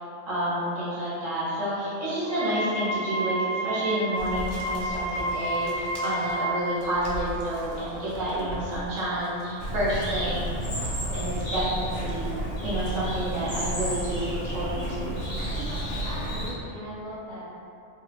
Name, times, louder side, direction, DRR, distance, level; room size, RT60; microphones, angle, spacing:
voice 1, 0.3-10.5 10.8-12.3 12.6-15.1, right 1 dB, 80° right, -9 dB, 1.5 m, -29 dB
Wind instrument woodwind instrument, 2.2-6.7, right 1 dB, 60° left, 0.6 m, -30 dB
sound 1, 4.2-10.0 10.5-11.0 11.4-11.5, left 1 dB, 65° right, 0.8 m, -40 dB
Bird, 9.6-16.5, equal, 80° left, 1.5 m, -31 dB
voice 2, 16.0-17.4, equal, 25° left, -13 dB, 0.9 m, -39 dB
3.5 x 2.3 x 3.1 m, 2.6 s
omnidirectional pair, 1.3 m